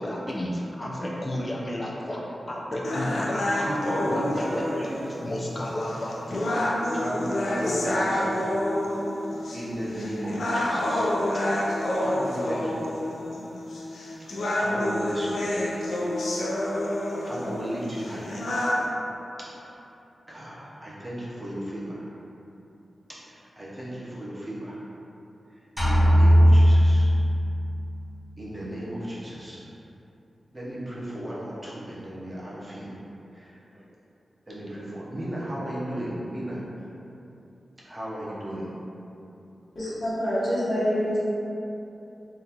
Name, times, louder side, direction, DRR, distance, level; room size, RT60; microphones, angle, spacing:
voice 1, 0.0-2.2 2.5-6.8 7.6-8.1, left 1 dB, 25° left, -3 dB, 0.4 m, -32 dB
sound 1, 2.8-18.9, left 1 dB, 85° left, 0.4 m, -28 dB
voice 2, 3.6-5.2 6.9-8.7 9.5-11.4 11.9-12.9 14.2-15.6 17.2-18.4 19.4-19.5 20.3-22.1 23.1-24.8 25.8-27.1 28.4-29.6 30.5-32.9 33.3-33.8 34.5-36.6 37.8-38.7, right 1 dB, 20° right, -8 dB, 0.7 m, -35 dB
sound 2, 25.8-27.6, equal, 10° left, 0.9 m, -17 dB
voice 3, 39.7-41.2, equal, 65° left, -11 dB, 1.0 m, -26 dB
3.7 x 2.4 x 2.8 m, 2.9 s
wide cardioid pair, 135°, 0 cm